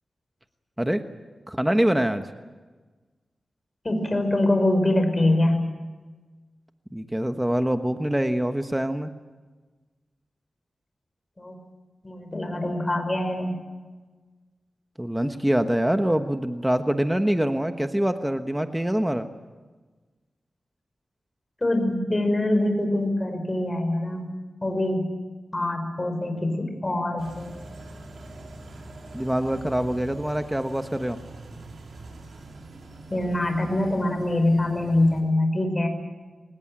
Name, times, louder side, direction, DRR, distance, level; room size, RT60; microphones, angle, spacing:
voice 1, 1.5-2.3 6.9-9.1 15.0-19.3 29.1-31.2, right 1 dB, 10° right, 7 dB, 1.2 m, -24 dB
voice 2, 3.8-5.6 11.4-11.6 12.0-13.6 21.6-24.3 24.6-25.1 25.5-27.6 33.1-35.9, left 1 dB, 25° left, 6 dB, 5.7 m, -24 dB
sound 1, 27.2-35.2, right 2 dB, 75° right, 5.4 m, -43 dB
24.0 x 20.0 x 8.9 m, 1.3 s
wide cardioid pair, 90°, 0 cm